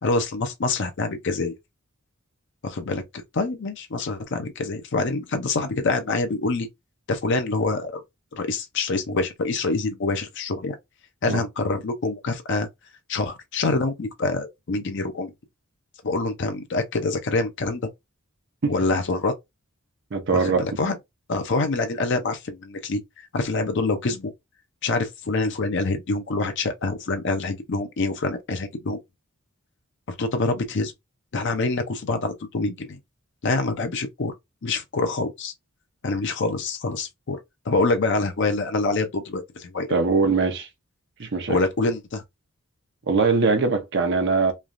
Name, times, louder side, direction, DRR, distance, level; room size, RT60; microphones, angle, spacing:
voice 1, 0.0-1.5 2.6-6.7 7.1-8.0 8.3-10.8 11.2-12.7 13.1-15.3 16.0-17.9 18.7-19.3 20.3-21.0 21.3-23.0 23.3-24.3 24.8-29.0 30.2-30.9 31.3-33.0 33.4-34.3 34.6-35.5 36.0-37.4 37.7-40.0 41.5-42.2, left 3 dB, 55° left, 0.5 m, -26 dB
voice 2, 20.1-20.6 39.9-40.7 41.2-41.6 43.1-44.5, right 4 dB, 55° right, 0.7 m, -21 dB
3.2 x 2.3 x 2.5 m
head